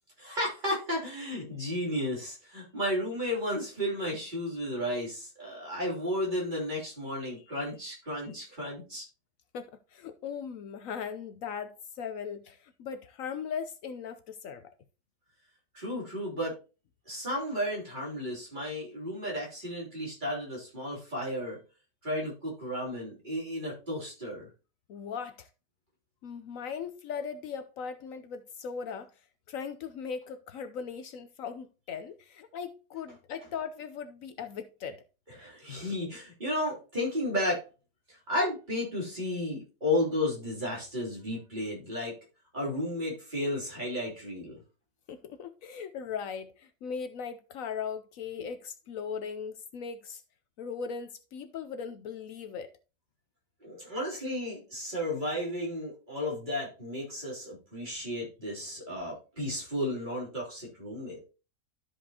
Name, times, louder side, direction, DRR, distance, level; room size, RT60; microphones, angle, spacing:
voice 1, 0.2-9.0 15.7-16.5 17.1-21.6 22.0-24.5 35.4-37.6 38.1-42.1 42.5-44.6 53.6-61.3, left 1 dB, 30° right, 3.3 m, -33 dB
voice 2, 9.5-14.7 24.9-25.5 26.2-35.0 45.1-50.2 50.6-52.7, left 6 dB, 70° left, 1.0 m, -39 dB
12.5 x 5.1 x 2.8 m
omnidirectional pair, 1.5 m